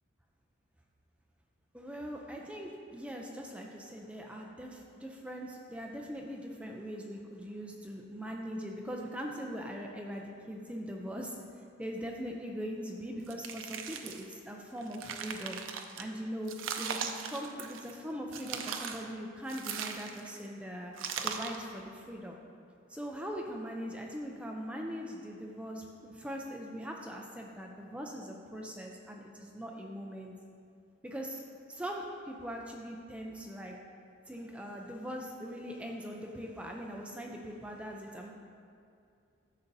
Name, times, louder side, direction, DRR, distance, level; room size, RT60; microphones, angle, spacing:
voice 1, 1.7-11.4 11.8-15.6 16.0-20.9 21.2-22.4 22.9-30.3 31.0-31.4 31.7-33.8 34.3-38.3, equal, 5° right, 0 dB, 0.4 m, -41 dB
sound 1, 13.3-14.3 14.8-16.0 16.5-18.0 18.3-19.1 19.5-20.4 21.0-21.7, right 6 dB, 80° right, 0.5 m, -39 dB
10.5 x 7.1 x 2.7 m, 2.5 s
head